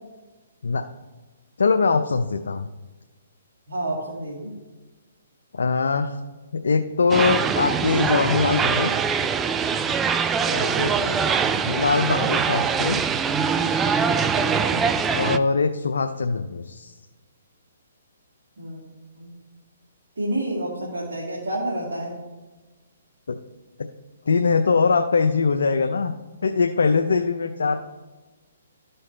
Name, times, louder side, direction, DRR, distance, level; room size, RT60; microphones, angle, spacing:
voice 1, 1.6-2.7 5.5-6.2 6.5-8.9 10.8-10.9 11.6-13.0 15.1-16.9 23.3-23.4 24.3-26.1 26.4-27.8, left 4 dB, 80° left, 6 dB, 0.5 m, -22 dB
voice 2, 3.7-4.5 10.4-11.2 14.3-14.8 18.6-18.8 19.1-19.3 20.2-22.1, right 1 dB, 80° right, -5 dB, 2.3 m, -29 dB
sound 1, 7.1-15.4, right 6 dB, 15° right, 0.4 m, -23 dB
13.5 x 5.5 x 3.3 m, 1.2 s
hypercardioid pair, 135°, 0 cm